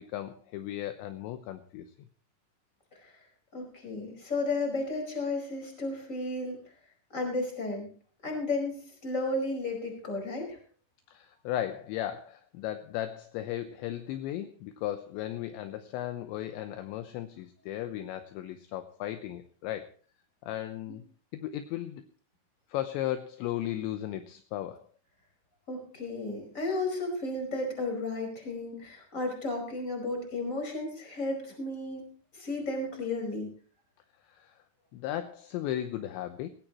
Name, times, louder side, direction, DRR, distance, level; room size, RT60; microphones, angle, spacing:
voice 1, 0.0-1.9 11.1-19.9 20.4-21.0 21.3-22.0 22.7-24.9 34.3-34.5 34.9-36.5, left 12 dB, 75° left, 9 dB, 2.9 m, -36 dB
voice 2, 3.5-6.6 7.1-7.9 8.2-10.6 25.7-32.0 32.3-33.5, left 2 dB, 15° left, 2 dB, 5.0 m, -33 dB
18.0 x 17.5 x 3.0 m, 0.41 s
omnidirectional pair, 5.6 m